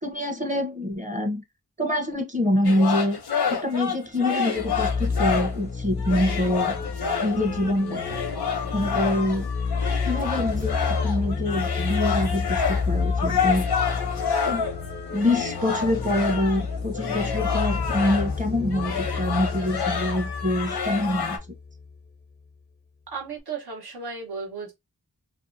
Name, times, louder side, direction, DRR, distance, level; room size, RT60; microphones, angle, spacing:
voice 1, 0.0-1.4 1.8-3.2 3.5-6.7 7.2-8.2 8.7-9.5 10.0-13.6 14.5-14.6 15.1-21.4, left 1 dB, 20° right, 0.7 m, -25 dB
sound 1, 2.6-5.6 6.0-18.4 18.7-21.4, left 6 dB, 90° left, 0.7 m, -29 dB
sound 2, 4.6-22.0, left 4 dB, 30° left, 0.4 m, -30 dB
voice 2, 23.1-24.7, right 5 dB, 80° right, 1.1 m, -34 dB
2.6 x 2.3 x 2.5 m
wide cardioid pair, 50°, 38 cm